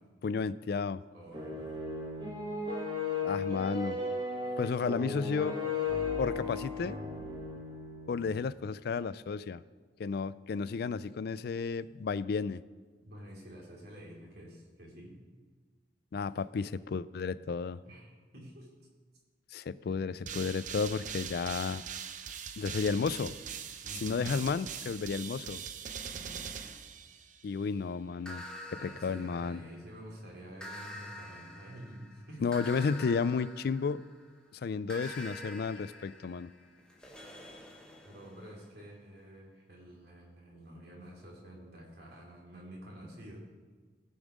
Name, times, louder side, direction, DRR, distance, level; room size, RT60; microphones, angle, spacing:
voice 1, 0.2-1.0 3.2-4.0 4.6-5.6 6.2-7.0 8.1-9.6 10.0-12.6 16.1-17.8 19.5-21.8 22.6-23.4 24.0-25.6 27.4-28.4 28.8-29.6 32.4-34.0 34.5-36.5, left 5 dB, 60° left, 17 dB, 0.3 m, -32 dB
voice 2, 1.1-1.8 13.0-15.2 17.8-18.9 19.9-20.1 23.8-24.3 26.0-26.6 28.8-32.5 38.0-43.5, equal, 60° right, -2 dB, 2.7 m, -49 dB
sound 1, 1.3-8.3, left 3 dB, 25° right, 1.4 m, -35 dB
sound 2, 20.3-27.5, right 7 dB, 45° right, 0.5 m, -42 dB
sound 3, 28.2-30.0 30.6-34.3 34.9-38.6, left 1 dB, 5° left, 1.2 m, -47 dB
16.5 x 5.5 x 5.0 m, 1.4 s
head